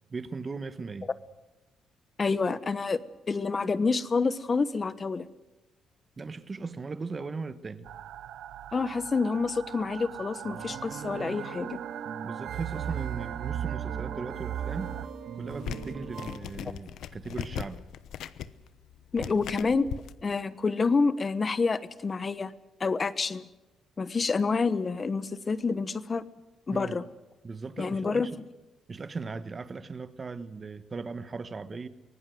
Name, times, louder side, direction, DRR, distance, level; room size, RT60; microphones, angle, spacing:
voice 1, 0.1-1.1 6.2-7.9 12.2-14.9 15.3-17.8 19.2-19.5 26.7-26.9 27.4-28.3 28.9-31.9, right 4 dB, 35° right, 13 dB, 1.4 m, -38 dB
voice 2, 2.2-3.0 3.3-5.2 8.7-11.8 19.1-19.9 20.2-22.5 22.8-23.4 24.0-26.2 26.7-27.0 27.8-28.3, left 4 dB, 35° left, 15 dB, 1.1 m, -28 dB
sound 1, 7.9-15.1, right 11 dB, 80° right, 0.9 m, -38 dB
sound 2, 10.4-16.4, right 7 dB, 60° right, 1.7 m, -40 dB
sound 3, 15.5-20.1, left 10 dB, 80° left, 0.9 m, -39 dB
24.5 x 18.5 x 7.9 m, 1.0 s
cardioid pair, 90°, 0 cm